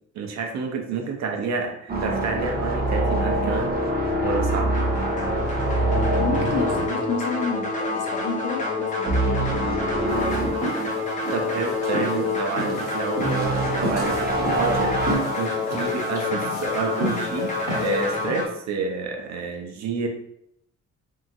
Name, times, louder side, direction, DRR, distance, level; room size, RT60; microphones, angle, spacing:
voice 1, 0.1-3.8 4.2-4.7 11.3-17.5 17.8-20.1, right 4 dB, 65° right, 3 dB, 0.6 m, -29 dB
sound 1, 1.9-8.0 8.2-8.5 9.0-10.5 11.0-11.1 13.2-15.1, right 1 dB, 30° right, 0.8 m, -25 dB
sound 2, 4.7-18.5, left 3 dB, 25° left, 0.7 m, -28 dB
voice 2, 5.9-10.4, left 4 dB, 80° left, 2 dB, 0.7 m, -30 dB
sound 3, 10.1-18.5, equal, 10° right, 1.3 m, -33 dB
2.8 x 2.5 x 2.6 m, 0.75 s
cardioid pair, 90°, 30 cm